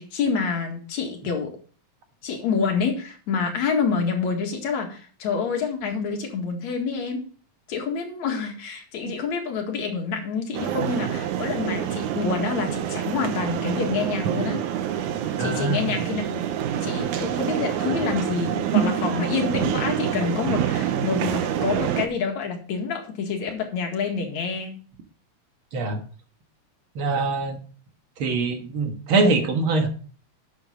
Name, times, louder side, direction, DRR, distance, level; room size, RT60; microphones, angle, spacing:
voice 1, 0.0-1.5 2.2-7.2 7.7-14.6 15.4-16.5 16.8-24.8, left 5 dB, 70° left, 3 dB, 3.2 m, -27 dB
sound 1, 10.5-22.1, right 10 dB, 90° right, 2.4 m, -26 dB
voice 2, 15.4-15.9 25.7-26.0 27.0-27.6 28.2-29.9, right 3 dB, 50° right, 5 dB, 2.0 m, -23 dB
11.0 x 8.3 x 3.8 m, 0.40 s
omnidirectional pair, 3.4 m